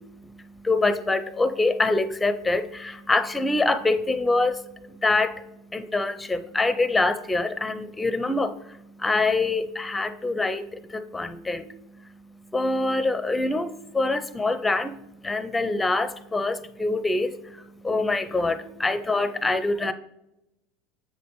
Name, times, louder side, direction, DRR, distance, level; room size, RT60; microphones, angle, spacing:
voice 1, 0.0-19.9, left 2 dB, 15° left, 12 dB, 0.6 m, -25 dB
7.9 x 5.0 x 3.1 m, 0.88 s
hypercardioid pair, 85°, 0 cm